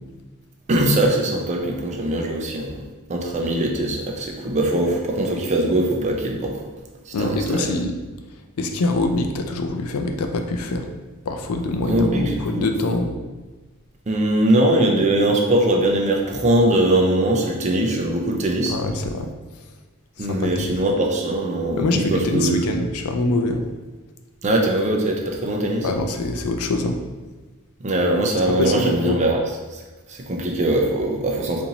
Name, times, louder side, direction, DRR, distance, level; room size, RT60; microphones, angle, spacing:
voice 1, 0.7-2.8 3.1-6.6 7.1-7.7 11.9-12.7 14.1-18.8 20.2-22.6 24.4-25.9 27.8-29.4 29.7-29.8 30.1-31.6, right 1 dB, 30° right, 0 dB, 0.5 m, -21 dB
voice 2, 7.1-7.9 8.6-10.9 11.3-13.1 18.7-19.3 20.2-20.8 21.8-23.6 25.8-27.0 28.6-29.2, left 2 dB, 80° left, 5 dB, 0.4 m, -24 dB
4.2 x 2.6 x 2.8 m, 1.2 s
head